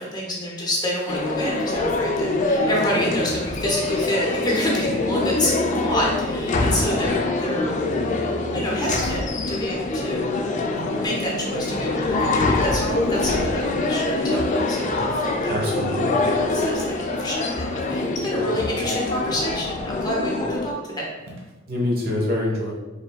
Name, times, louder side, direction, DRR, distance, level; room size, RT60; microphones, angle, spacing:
voice 1, 0.0-7.8 8.5-10.3 11.0-15.9 16.3-21.1, equal, 20° left, -3 dB, 0.7 m, -28 dB
sound 1, 1.1-20.7, left 2 dB, 35° left, 0.4 m, -24 dB
sound 2, 2.8-9.8, equal, 15° right, 1.5 m, -39 dB
sound 3, 4.9-5.3 6.7-7.1 8.5-9.1 10.8-11.5 13.4-13.9 15.9-16.2 18.5-19.1 21.2-21.6, right 1 dB, 75° right, 0.8 m, -41 dB
voice 2, 15.4-16.3 21.7-22.7, left 1 dB, 50° right, -2 dB, 1.1 m, -25 dB
5.0 x 3.3 x 2.2 m, 1.2 s
head